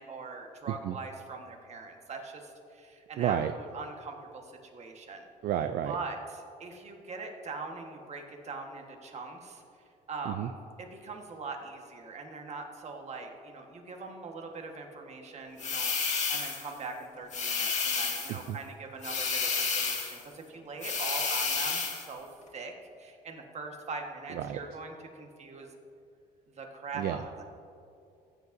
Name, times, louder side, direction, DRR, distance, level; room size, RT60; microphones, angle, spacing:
voice 1, 0.0-5.3 5.8-9.6 10.1-22.7 23.0-25.7 26.5-27.4, right 4 dB, 40° right, 3 dB, 1.4 m, -42 dB
voice 2, 3.2-3.5 5.4-6.0 10.3-10.5 18.3-18.6 24.3-24.6 27.0-27.2, right 10 dB, 65° right, 9 dB, 0.4 m, -31 dB
sound 1, 15.6-16.7 17.3-18.4 19.0-20.2 20.8-22.1, left 5 dB, 45° left, 1.9 m, -31 dB
15.0 x 8.1 x 2.7 m, 2.6 s
cardioid pair, 110°, 17 cm